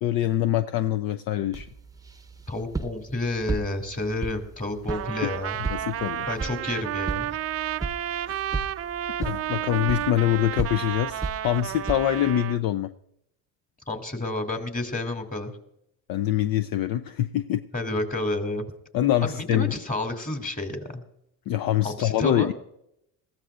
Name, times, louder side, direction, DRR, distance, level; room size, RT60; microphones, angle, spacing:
voice 1, 0.0-1.7 5.2-5.3 5.7-6.3 8.2-8.4 9.2-12.9 16.1-17.6 18.9-19.7 21.5-22.5, left 12 dB, 60° left, 11 dB, 0.6 m, -24 dB
sound 1, 1.5-12.3, right 3 dB, 10° right, 0.8 m, -36 dB
voice 2, 2.5-5.6 6.3-7.4 13.9-15.5 17.7-18.6 19.2-21.0 21.8-22.5, left 2 dB, 20° left, 6 dB, 2.7 m, -30 dB
Trumpet, 4.9-12.6, right 12 dB, 35° right, 0.5 m, -31 dB
20.5 x 15.0 x 2.5 m, 0.79 s
supercardioid pair, 90°, 40 cm